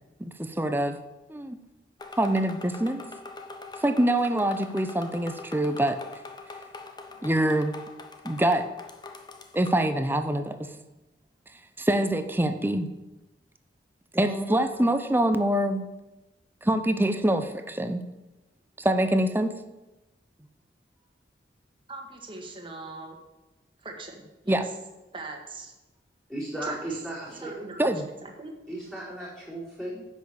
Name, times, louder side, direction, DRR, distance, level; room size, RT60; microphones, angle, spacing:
voice 1, 0.2-1.0 1.3-1.6 2.2-3.0 3.8-6.0 7.2-7.7 8.2-8.7 9.5-10.7 11.8-12.9 14.1-15.9 16.6-18.0 18.8-19.5 24.5-24.6 27.8-28.1, right 1 dB, 10° right, 9 dB, 0.7 m, -25 dB
sound 1, 2.0-9.9, left 3 dB, 25° left, 0.9 m, -43 dB
voice 2, 21.9-23.2 23.8-24.6 25.1-25.7 26.6-26.8 27.3-28.5, right 3 dB, 30° right, 2 dB, 1.8 m, -41 dB
voice 3, 26.3-27.7 28.7-30.1, right 1 dB, 5° left, -7 dB, 4.3 m, -35 dB
10.0 x 6.4 x 7.0 m, 1.0 s
head